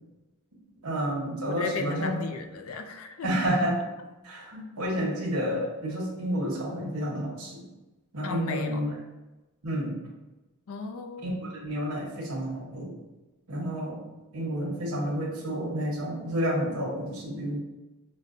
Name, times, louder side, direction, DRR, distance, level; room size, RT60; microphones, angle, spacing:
voice 1, 0.8-2.1 3.2-3.8 4.2-7.6 8.1-8.9 9.6-10.0 11.2-12.9 13.5-14.0 14.3-17.6, equal, 85° right, -3 dB, 1.0 m, -30 dB
voice 2, 1.5-3.3 8.2-8.8 10.7-11.3, left 5 dB, 65° left, 5 dB, 0.4 m, -35 dB
5.1 x 2.1 x 2.5 m, 1.1 s
head